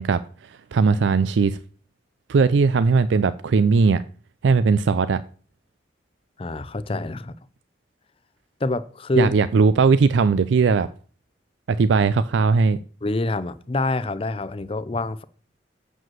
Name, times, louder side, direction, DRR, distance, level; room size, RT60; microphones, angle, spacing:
voice 1, 0.0-1.6 2.3-4.0 4.4-5.2 9.2-10.9 11.7-12.8, right 5 dB, 85° right, 0.4 m, -19 dB
voice 2, 6.4-7.4 8.6-9.3 13.0-15.2, left 2 dB, 30° left, 0.5 m, -26 dB
7.8 x 5.1 x 7.4 m
head